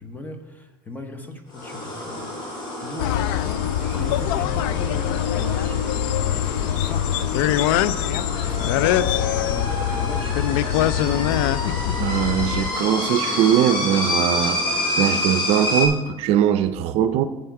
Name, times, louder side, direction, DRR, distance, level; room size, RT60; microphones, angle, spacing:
voice 1, 0.0-3.3 3.8-5.8 6.2-7.7 8.1-11.7, left 1 dB, 15° left, 6 dB, 1.0 m, -38 dB
sound 1, 1.5-15.9, left 1 dB, 45° left, 2.8 m, -29 dB
sound 2, 3.0-12.7, left 11 dB, 90° left, 0.4 m, -23 dB
sound 3, 8.6-15.2, left 6 dB, 65° left, 0.9 m, -40 dB
voice 2, 12.0-14.6 15.0-17.2, right 10 dB, 60° right, 11 dB, 0.5 m, -21 dB
7.8 x 7.7 x 4.7 m, 1.1 s
cardioid pair, 140°, 12 cm